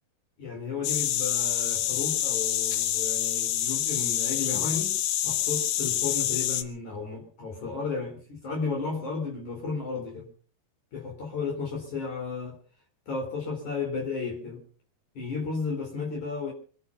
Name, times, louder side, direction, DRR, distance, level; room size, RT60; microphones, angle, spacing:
voice 1, 0.4-5.0 5.2-10.3 10.9-12.6 13.1-14.6 15.2-16.5, left 4 dB, 50° left, 0 dB, 5.5 m, -33 dB
sound 1, 0.8-6.6, left 12 dB, 80° left, 3.0 m, -27 dB
25.0 x 10.5 x 5.4 m, 0.42 s
omnidirectional pair, 4.4 m